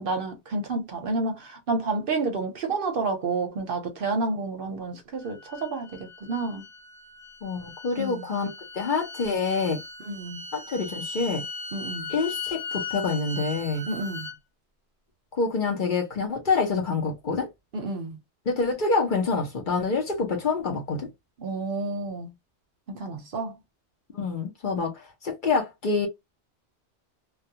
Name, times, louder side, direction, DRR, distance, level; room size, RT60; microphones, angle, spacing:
voice 1, 0.0-6.6 8.0-8.3 10.1-10.4 11.7-12.1 13.8-14.3 17.7-18.2 21.4-22.3 22.9-23.6, right 3 dB, 60° right, 0.7 m, -30 dB
sound 1, 5.2-14.3, left 4 dB, 15° left, 1.1 m, -38 dB
voice 2, 7.4-8.5 8.8-9.8 10.5-11.4 12.1-13.8 15.4-17.5 18.5-21.1 24.1-26.1, left 4 dB, 50° left, 0.8 m, -26 dB
2.3 x 2.2 x 2.7 m
omnidirectional pair, 1.2 m